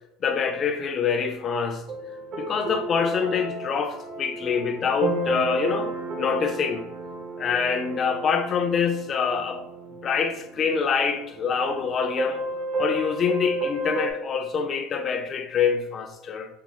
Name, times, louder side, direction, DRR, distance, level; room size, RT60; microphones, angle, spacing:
voice 1, 0.2-1.8 2.4-5.9 6.2-6.8 7.4-9.6 10.0-12.4 12.8-16.5, left 6 dB, 35° left, 0.4 m, -25 dB
sound 1, 1.9-14.1, right 2 dB, 45° right, 0.6 m, -32 dB
4.4 x 2.2 x 2.8 m
supercardioid pair, 120°, 0 cm